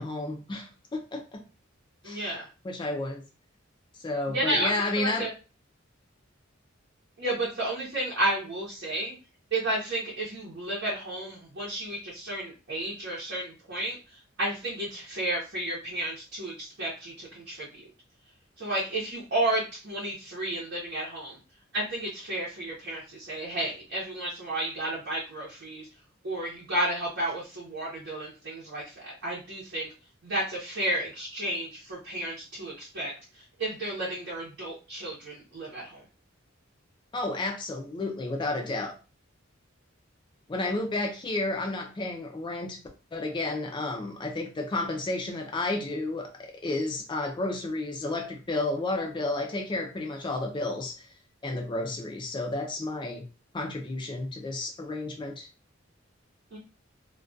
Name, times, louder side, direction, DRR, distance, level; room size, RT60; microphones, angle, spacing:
voice 1, 0.0-1.4 2.0-2.3 2.6-3.2 4.0-5.3 37.1-38.9 40.5-42.8 43.1-51.1 51.4-53.2 53.5-55.5, left 2 dB, 25° left, 3 dB, 0.3 m, -31 dB
voice 2, 2.0-2.5 4.3-5.3 7.2-9.1 9.5-14.0 14.4-17.8 18.6-21.4 21.7-25.9 26.2-29.9 30.2-36.0 56.5-56.6, right 1 dB, 60° right, -6 dB, 0.7 m, -32 dB
2.2 x 2.2 x 2.5 m, 0.33 s
head